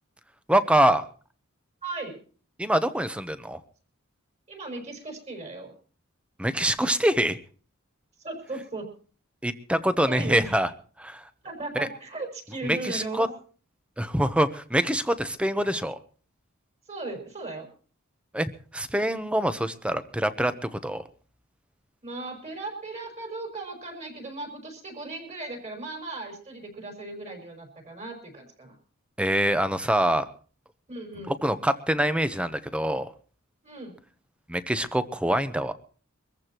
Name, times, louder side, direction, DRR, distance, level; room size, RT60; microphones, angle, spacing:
voice 1, 0.5-1.0 2.6-3.6 6.4-7.4 9.4-10.7 11.0-11.2 11.7-11.9 12.6-13.3 14.0-16.0 18.3-21.0 29.2-30.2 31.3-33.1 34.5-35.7, right 1 dB, 5° right, 12 dB, 0.9 m, -25 dB
voice 2, 1.8-2.2 4.5-5.7 8.2-8.9 10.0-10.5 11.4-13.3 16.9-17.7 22.0-28.8 30.9-31.3 33.6-34.0, right 2 dB, 30° right, 3 dB, 5.8 m, -37 dB
24.5 x 14.5 x 3.0 m, 0.41 s
head